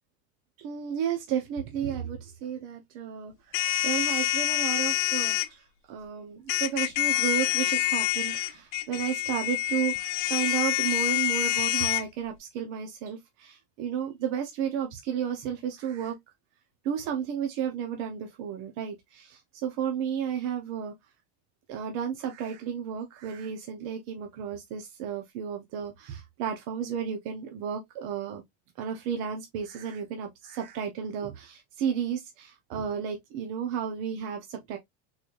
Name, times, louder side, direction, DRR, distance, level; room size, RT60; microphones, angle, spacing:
voice 1, 0.6-16.2 16.8-20.9 21.7-28.4 28.8-34.8, right 8 dB, 55° right, 0.8 m, -33 dB
sound 1, 3.5-5.5 6.5-12.0, left 16 dB, 65° left, 0.7 m, -27 dB
4.0 x 3.1 x 2.4 m
cardioid pair, 165°, 39 cm